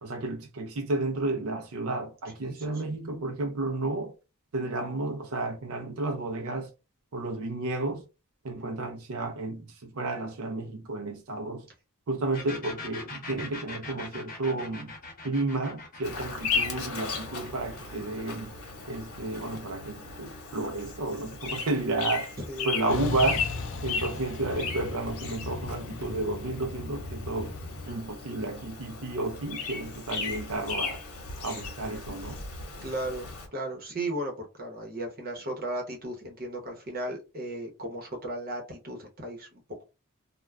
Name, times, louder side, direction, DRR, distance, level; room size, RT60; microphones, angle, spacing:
voice 1, 0.0-4.1 4.5-6.7 7.1-8.0 8.4-11.7 12.1-14.9 15.2-18.5 18.9-22.3 22.6-23.5 23.8-27.5 27.9-31.0 31.4-32.4, right 2 dB, 65° right, 0.5 m, -32 dB
voice 2, 2.4-2.8 8.6-8.8 22.4-22.7 32.8-39.8, right 1 dB, 40° right, 0.9 m, -36 dB
sound 1, 12.3-19.8, left 3 dB, 40° left, 0.9 m, -43 dB
Bird vocalization bird call bird song, 16.0-33.5, left 5 dB, 85° left, 0.9 m, -36 dB
Truck, 22.9-27.9, left 3 dB, 60° left, 0.4 m, -37 dB
2.3 x 2.2 x 3.1 m
head